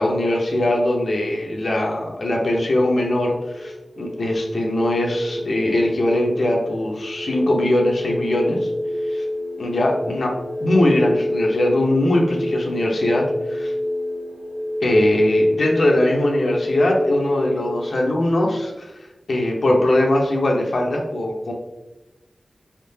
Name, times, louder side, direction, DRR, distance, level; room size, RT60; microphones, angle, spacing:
voice 1, 0.0-8.7 9.1-9.2 9.6-10.3 10.6-13.7 14.8-18.9 19.3-21.5, left 1 dB, 75° left, -1 dB, 0.8 m, -21 dB
sound 1, 3.4-18.1, left 1 dB, 25° right, 0.7 m, -28 dB
4.3 x 3.6 x 2.7 m, 1.0 s
wide cardioid pair, 55°, 0 cm